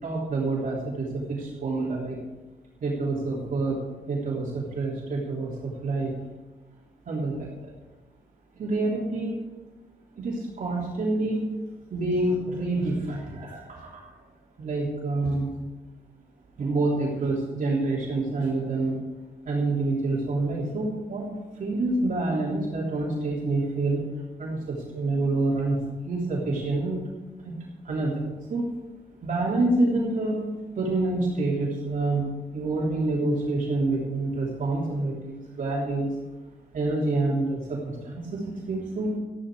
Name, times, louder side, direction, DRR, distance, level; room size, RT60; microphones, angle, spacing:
voice 1, 0.0-2.2 2.8-3.8 4.1-6.1 7.1-7.7 8.5-9.4 10.2-11.4 11.9-14.1 14.6-15.5 16.6-19.0 19.4-21.3 21.6-24.0 24.4-25.8 26.0-27.0 27.4-27.5 27.8-28.6 29.2-30.4 30.7-36.1 36.7-39.2, right 2 dB, 55° right, -5 dB, 3.3 m, -27 dB
13.5 x 11.5 x 4.9 m, 1.1 s
cardioid pair, 100°, 16 cm